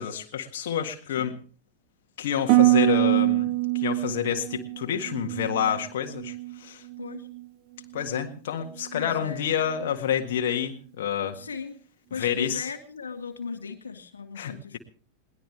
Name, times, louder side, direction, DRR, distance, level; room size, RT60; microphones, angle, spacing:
voice 1, 0.0-1.3 2.2-3.5 3.7-6.8 7.9-11.4 12.2-12.7 14.4-14.8, left 9 dB, 55° left, 5 dB, 1.7 m, -28 dB
Harp, 2.5-6.6 6.9-7.4 7.9-8.3, right 19 dB, 40° right, 1.0 m, -24 dB
voice 2, 8.9-9.6 11.3-11.8 12.1-14.8, left 5 dB, 70° left, 7 dB, 1.7 m, -37 dB
21.5 x 19.0 x 3.4 m, 0.40 s
figure-of-eight pair, 90°, 0 cm